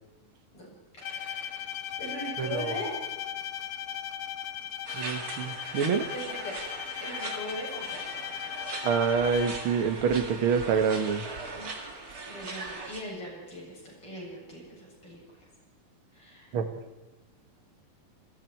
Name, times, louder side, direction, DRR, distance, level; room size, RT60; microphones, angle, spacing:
voice 1, 0.9-2.9 6.1-6.6 7.0-8.1 11.6-11.9 12.3-15.5 16.1-16.6, equal, 35° left, -3 dB, 9.0 m, -40 dB
Bowed string instrument, 1.0-9.8, left 10 dB, 65° left, 1.8 m, -37 dB
voice 2, 2.4-2.7 4.9-6.1 8.8-11.2 16.5-16.6, right 6 dB, 50° right, 7 dB, 1.7 m, -26 dB
sound 1, 4.8-13.0, right 3 dB, 30° right, 2.0 m, -40 dB
29.0 x 21.0 x 4.7 m, 1.2 s
omnidirectional pair, 4.1 m